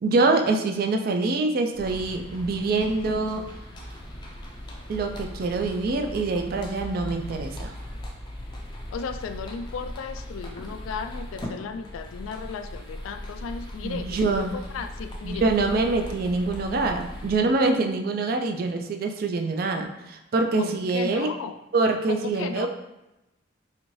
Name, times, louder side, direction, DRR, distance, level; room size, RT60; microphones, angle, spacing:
voice 1, 0.0-3.4 4.9-7.7 13.8-14.5 15.2-21.3 21.7-22.7, right 3 dB, 50° right, 4 dB, 0.3 m, -25 dB
sound 1, 1.7-17.4, left 1 dB, 20° left, 0.4 m, -38 dB
voice 2, 8.9-15.5 20.6-21.5 22.1-22.7, left 5 dB, 90° left, 9 dB, 0.3 m, -35 dB
4.1 x 2.6 x 3.1 m, 0.95 s
head